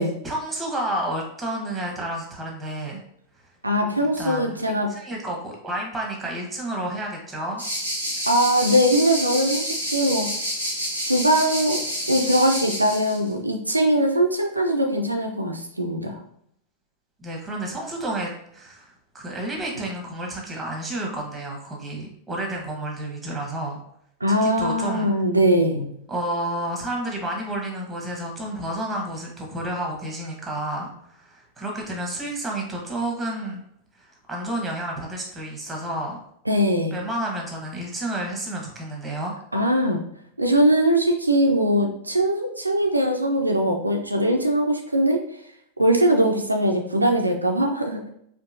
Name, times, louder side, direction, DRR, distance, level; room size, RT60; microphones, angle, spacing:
voice 1, 0.2-3.0 4.0-4.6 4.9-7.6 17.2-23.8 24.4-25.1 26.1-33.6 34.0-36.2 36.9-39.3, right 1 dB, 10° right, 0 dB, 1.1 m, -30 dB
voice 2, 3.6-4.9 8.3-10.3 11.0-11.8 12.1-16.2 24.2-25.9 36.5-37.0 39.5-40.0 40.4-45.2 45.8-48.1, right 1 dB, 85° right, 3 dB, 0.4 m, -21 dB
sound 1, 7.6-13.2, equal, 90° left, 1.1 m, -28 dB
4.4 x 2.6 x 2.6 m, 0.70 s
figure-of-eight pair, 90°, 0 cm